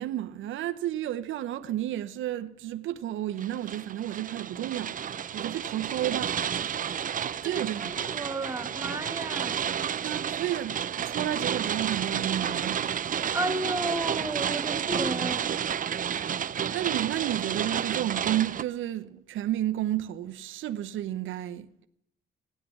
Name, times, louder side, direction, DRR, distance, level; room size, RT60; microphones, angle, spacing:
voice 1, 0.0-6.3 7.4-7.9 10.0-12.9 16.2-16.3 16.7-21.9, right 12 dB, 80° right, 0.8 m, -32 dB
sound 1, 3.4-18.6, right 8 dB, 40° right, 0.6 m, -31 dB
voice 2, 7.4-9.7 13.3-15.6, right 2 dB, 15° right, 1.6 m, -33 dB
17.0 x 8.3 x 9.8 m
cardioid pair, 90°, 20 cm